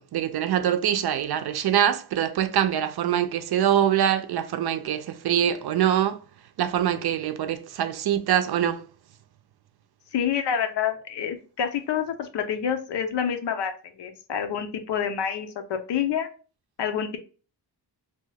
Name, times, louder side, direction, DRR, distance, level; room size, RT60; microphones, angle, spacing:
voice 1, 0.0-6.2 6.6-8.8, right 10 dB, 70° right, 0.5 m, -24 dB
voice 2, 10.1-13.7 14.0-16.3 16.8-17.2, left 8 dB, 85° left, 0.7 m, -27 dB
2.8 x 2.3 x 3.2 m
wide cardioid pair, 130°, 41 cm